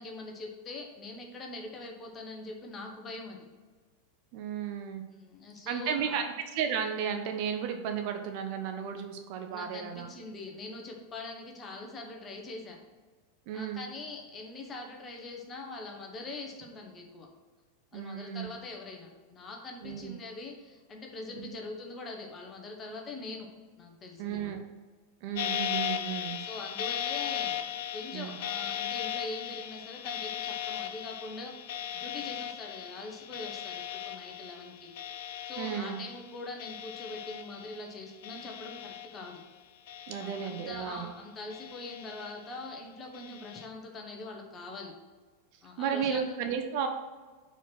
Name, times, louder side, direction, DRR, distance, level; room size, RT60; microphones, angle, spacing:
voice 1, 0.0-3.4 5.1-6.2 9.5-12.8 13.5-17.3 17.9-23.5 23.8-24.6 26.0-31.5 31.9-34.9 35.4-39.3 40.2-44.9 45.6-46.5, left 2 dB, 20° left, 1 dB, 1.2 m, -43 dB
voice 2, 4.3-5.0 5.7-10.1 13.5-13.8 17.9-18.5 19.8-20.1 21.3-21.5 24.2-24.6 25.2-26.4 28.1-28.4 35.6-36.0 40.1-41.1 45.8-46.9, right 7 dB, 45° right, 6 dB, 0.6 m, -33 dB
sound 1, 25.4-37.9 38.2-39.4 39.9-41.1 41.5-42.6 43.1-43.7, left 10 dB, 55° left, 0.4 m, -37 dB
4.5 x 4.5 x 5.9 m, 1.4 s
figure-of-eight pair, 90°, 0 cm